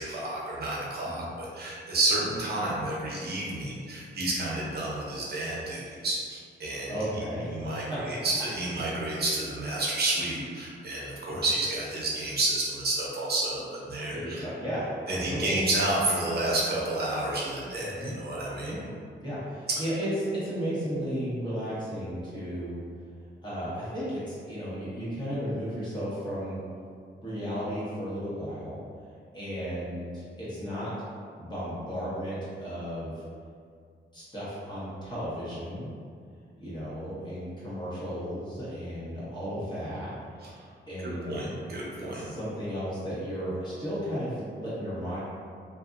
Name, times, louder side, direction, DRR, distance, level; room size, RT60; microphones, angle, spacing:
voice 1, 0.0-6.9 7.5-14.4 15.1-18.7 41.0-42.3, right 2 dB, 55° right, -5 dB, 0.7 m, -30 dB
voice 2, 6.9-8.0 11.3-11.4 14.1-15.5 18.0-18.1 18.6-18.9 19.2-22.8 23.4-26.6 27.2-28.8 29.3-30.9 31.4-33.1 34.1-35.9 36.6-40.1 40.9-41.4 42.0-45.2, equal, 20° left, -11 dB, 1.2 m, -34 dB
2.6 x 2.5 x 2.4 m, 2.2 s
cardioid pair, 95°, 20 cm